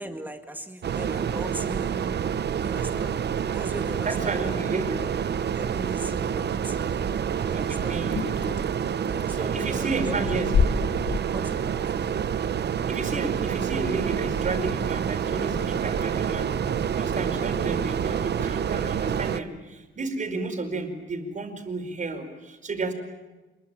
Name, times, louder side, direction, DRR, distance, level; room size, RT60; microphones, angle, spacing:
voice 1, 0.0-2.2 2.6-3.2 3.5-5.2 5.5-8.0 9.0-10.3 11.3-12.1, right 1 dB, 10° right, 5 dB, 1.9 m, -39 dB
sound 1, 0.8-19.4, right 8 dB, 60° right, 0.9 m, -28 dB
voice 2, 4.1-5.0 7.5-8.3 9.3-10.5 12.9-16.5 16.9-22.9, right 3 dB, 40° right, 5 dB, 4.8 m, -32 dB
sound 2, 8.1-9.2 9.8-11.2, left 6 dB, 70° left, 1.6 m, -26 dB
27.0 x 22.0 x 8.9 m, 1.2 s
wide cardioid pair, 135°, 20 cm